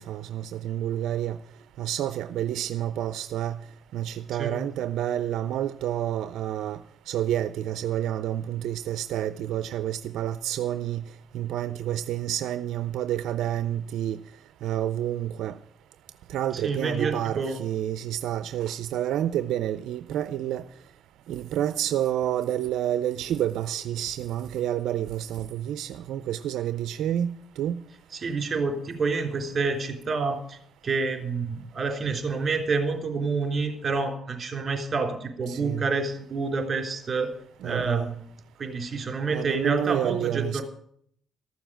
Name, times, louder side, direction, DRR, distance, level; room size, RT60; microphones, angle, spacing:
voice 1, 0.0-1.4 1.8-3.6 3.9-6.8 7.1-11.0 11.3-14.2 14.6-15.6 16.3-20.6 21.3-27.8 35.5-35.9 37.6-38.1 39.3-40.6, right 11 dB, 80° right, 0.4 m, -29 dB
voice 2, 16.5-17.6 28.1-30.6 30.8-37.3 37.6-38.3 38.6-40.6, right 4 dB, 40° right, 3.6 m, -28 dB
14.0 x 7.1 x 8.9 m
cardioid pair, 90°, 0 cm